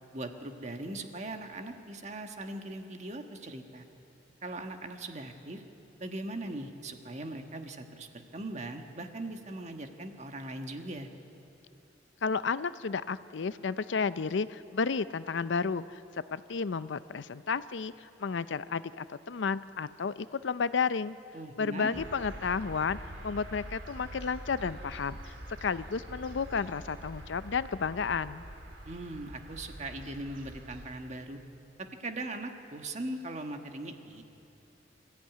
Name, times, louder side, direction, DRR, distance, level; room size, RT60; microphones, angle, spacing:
voice 1, 0.1-3.8 4.4-5.6 6.0-11.1 21.3-22.0 28.8-31.4 31.8-34.2, right 2 dB, 40° right, 5 dB, 1.5 m, -40 dB
voice 2, 12.2-16.0 16.3-21.2 21.6-25.3 25.6-28.4, left 5 dB, 70° left, 15 dB, 0.5 m, -32 dB
sound 1, 21.9-30.9, right 1 dB, 80° right, 3.0 m, -45 dB
25.0 x 14.0 x 9.3 m, 2.8 s
head